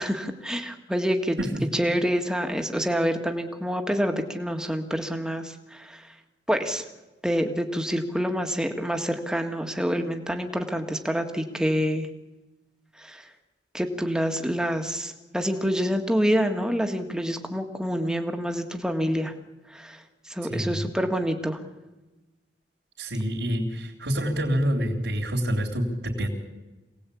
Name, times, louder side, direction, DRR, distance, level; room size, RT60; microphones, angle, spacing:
voice 1, 0.0-1.4 1.7-6.0 6.5-6.8 7.2-12.1 13.0-13.2 13.7-19.3 19.7-20.0 20.3-21.6, equal, 5° right, 5 dB, 1.8 m, -27 dB
voice 2, 20.5-20.9 23.0-26.3, equal, 80° right, -3 dB, 3.6 m, -27 dB
26.5 x 18.5 x 8.6 m, 1.1 s
head